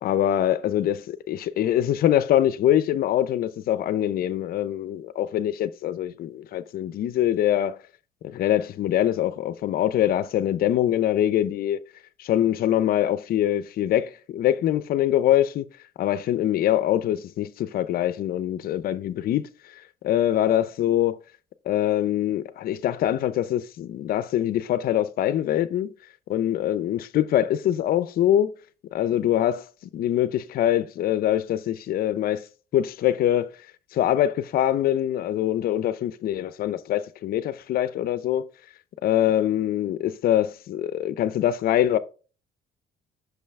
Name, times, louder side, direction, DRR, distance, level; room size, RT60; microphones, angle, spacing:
voice 1, 0.0-7.8 8.2-11.8 12.2-15.7 16.0-19.5 20.0-21.2 21.7-25.9 26.3-28.5 28.9-29.7 29.9-32.4 32.7-33.5 33.9-38.5 39.0-42.0, left 11 dB, 60° left, 0.6 m, -23 dB
6.2 x 5.4 x 3.6 m
cardioid pair, 110°, 17 cm